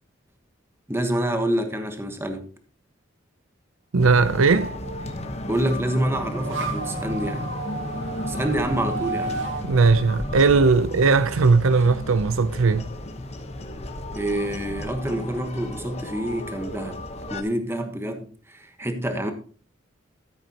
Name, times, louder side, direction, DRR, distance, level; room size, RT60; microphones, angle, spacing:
voice 1, 0.9-2.5 5.5-7.5 8.3-9.4 14.1-17.0 17.3-19.3, right 1 dB, 10° right, 1.2 m, -27 dB
voice 2, 3.9-4.7 9.6-12.9, right 4 dB, 80° right, 0.6 m, -18 dB
sound 1, 4.0-17.4, left 1 dB, 30° left, 1.1 m, -33 dB
sound 2, 6.0-11.3, right 3 dB, 65° right, 1.9 m, -33 dB
13.5 x 8.0 x 2.9 m
head